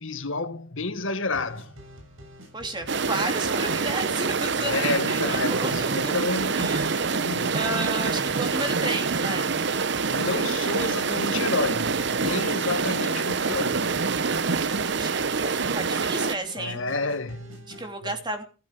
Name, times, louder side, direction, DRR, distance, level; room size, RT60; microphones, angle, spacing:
voice 1, 0.0-1.8 4.6-7.6 10.1-13.9 16.6-18.1, left 3 dB, 75° left, 1.7 m, -30 dB
sound 1, 1.3-17.9, equal, 85° right, 6.9 m, -46 dB
voice 2, 2.5-6.1 6.5-9.5 14.9-16.8 17.8-18.4, right 2 dB, 20° right, 2.8 m, -33 dB
sound 2, 2.9-16.4, right 4 dB, 60° right, 0.9 m, -26 dB
15.0 x 13.5 x 5.1 m
head